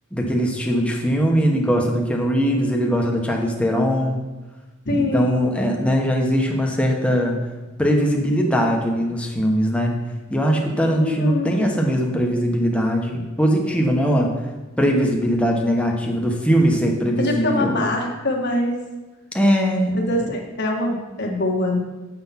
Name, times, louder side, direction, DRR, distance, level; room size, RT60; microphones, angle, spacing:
voice 1, 0.1-4.2 4.9-7.4 7.8-10.0 10.3-14.3 14.8-17.8 19.3-20.0, equal, 5° left, 0 dB, 1.2 m, -20 dB
voice 2, 4.8-5.5 11.0-11.7 17.2-18.8 19.9-21.8, left 1 dB, 55° left, 0 dB, 1.6 m, -23 dB
8.6 x 5.9 x 5.9 m, 1.2 s
head